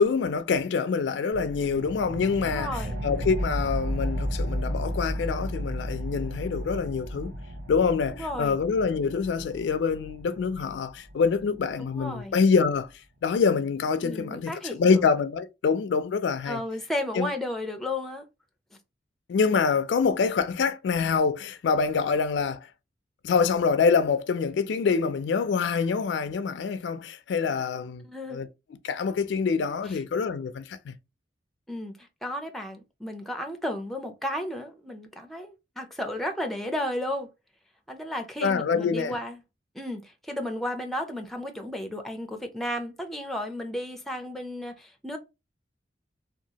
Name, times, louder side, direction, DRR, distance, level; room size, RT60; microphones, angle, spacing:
voice 1, 0.0-7.3 7.7-12.9 13.2-16.6 17.2-17.3 19.3-22.6 23.2-28.0 28.3-28.5 28.8-30.9 38.4-39.2, left 5 dB, 75° left, 0.3 m, -25 dB
sound 1, 1.3-12.4, equal, 80° right, 1.0 m, -34 dB
voice 2, 2.4-3.0 8.1-8.6 11.8-12.4 14.0-15.0 16.4-18.2 28.0-28.4 31.7-31.9 32.2-37.3 37.9-39.4 39.7-45.2, left 1 dB, ahead, 0.4 m, -33 dB
2.7 x 2.3 x 2.8 m
head